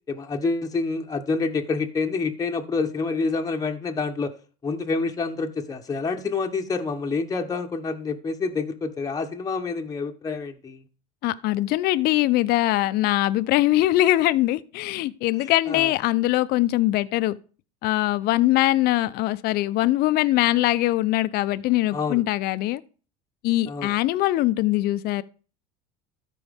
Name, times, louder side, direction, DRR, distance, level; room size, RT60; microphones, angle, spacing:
voice 1, 0.1-4.3 4.6-10.8 15.4-15.9 21.9-22.2 23.7-23.9, left 4 dB, 20° left, 1.0 m, -27 dB
voice 2, 11.2-17.4 17.8-22.8 23.4-25.2, left 16 dB, 55° left, 0.6 m, -22 dB
13.5 x 4.7 x 3.5 m
supercardioid pair, 100°, 20 cm